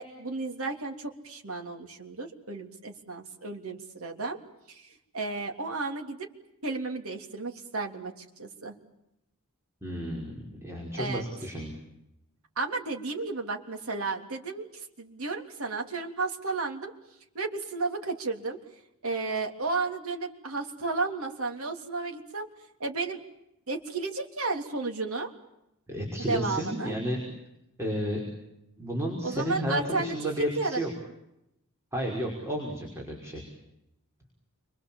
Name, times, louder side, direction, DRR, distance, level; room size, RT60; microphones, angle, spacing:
voice 1, 0.0-4.4 4.7-6.3 6.6-8.8 11.0-11.3 12.6-16.9 17.3-18.6 19.0-22.5 22.8-23.2 23.7-25.3 26.2-26.9 29.2-30.8, right 3 dB, 75° right, 2 dB, 3.4 m, -33 dB
voice 2, 9.8-11.8 25.9-27.2 27.8-28.2 28.8-30.9 31.9-33.5, equal, 15° right, -1 dB, 5.6 m, -32 dB
30.0 x 24.5 x 7.4 m, 0.85 s
head